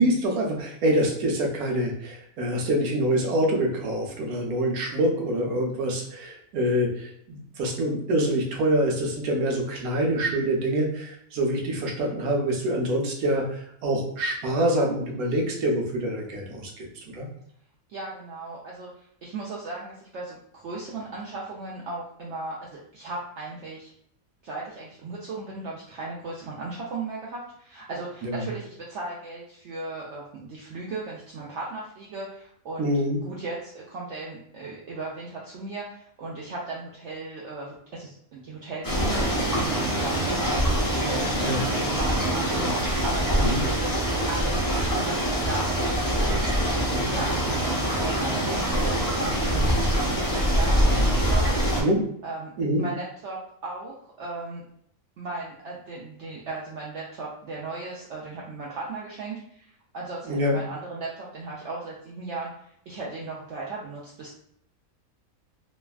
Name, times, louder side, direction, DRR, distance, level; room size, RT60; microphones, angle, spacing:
voice 1, 0.0-16.9 17.1-17.3 28.2-28.4 32.8-33.2 41.4-41.6 43.4-43.6 50.9-51.1 51.8-52.0 52.6-52.8 60.3-60.6, right 1 dB, 90° right, 1 dB, 1.2 m, -25 dB
voice 2, 17.9-23.9 24.4-32.9 33.2-43.5 43.7-43.9 44.3-46.7 47.0-49.7 50.3-51.6 52.2-52.5 52.8-54.6 55.2-64.3, right 3 dB, 65° right, -5 dB, 0.8 m, -37 dB
sound 1, 38.8-51.8, equal, 25° left, 0.4 m, -24 dB
3.1 x 2.2 x 2.3 m, 0.68 s
omnidirectional pair, 1.5 m